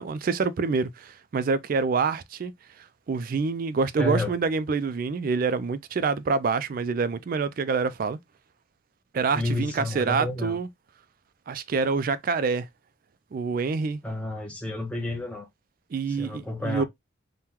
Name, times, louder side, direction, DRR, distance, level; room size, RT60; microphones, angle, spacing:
voice 1, 0.0-2.5 3.1-8.2 9.1-10.7 11.5-12.7 13.3-14.0 15.9-16.8, right 4 dB, 45° right, 0.3 m, -26 dB
voice 2, 4.0-4.3 9.3-10.6 14.0-15.5 16.1-16.8, left 2 dB, 5° left, 0.6 m, -30 dB
2.9 x 2.2 x 3.5 m
head